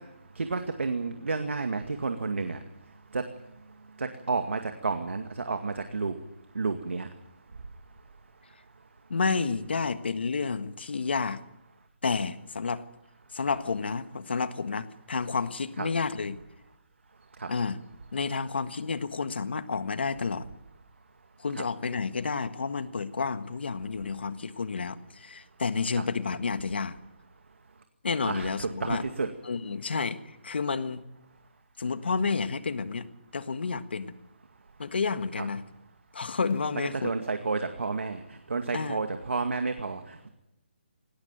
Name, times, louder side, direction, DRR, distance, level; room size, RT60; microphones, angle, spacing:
voice 1, 0.4-2.6 3.1-3.2 4.0-6.2 6.6-7.1 15.8-15.9 17.4-17.5 21.5-21.6 25.9-26.0 28.2-29.3 35.4-35.5 37.0-38.2 38.5-40.3, right 4 dB, 85° right, 7 dB, 2.2 m, -31 dB
voice 2, 9.1-11.4 12.0-12.8 13.3-16.4 17.5-17.8 18.1-20.5 21.4-27.0 28.0-29.0 29.4-31.0 31.8-33.1 33.3-34.1 34.8-35.6 36.1-37.1 38.7-39.0, left 5 dB, 60° left, 12 dB, 1.6 m, -30 dB
19.0 x 18.5 x 9.1 m, 0.86 s
hypercardioid pair, 175°, 6 cm